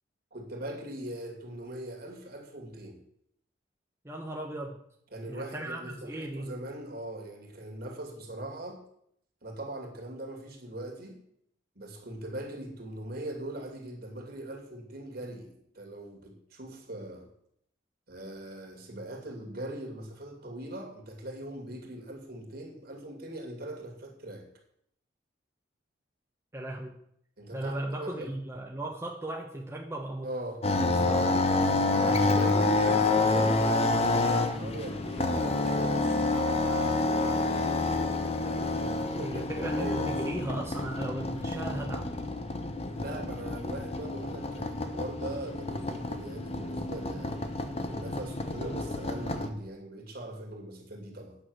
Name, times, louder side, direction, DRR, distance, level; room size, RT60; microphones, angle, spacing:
voice 1, 0.3-3.0 5.1-8.8 9.4-11.2 11.8-17.3 18.1-24.5 27.4-28.3 30.2-31.3 32.0-36.3 38.4-40.2 42.9-47.4 47.9-51.4, right 1 dB, 55° right, 1 dB, 2.6 m, -40 dB
voice 2, 4.0-4.8 5.3-6.5 26.5-27.0 27.5-30.3 39.2-42.1, right 1 dB, 15° right, -1 dB, 0.9 m, -36 dB
sound 1, 30.6-49.5, left 2 dB, 35° left, 0.9 m, -28 dB
9.1 x 6.3 x 7.9 m, 0.71 s
head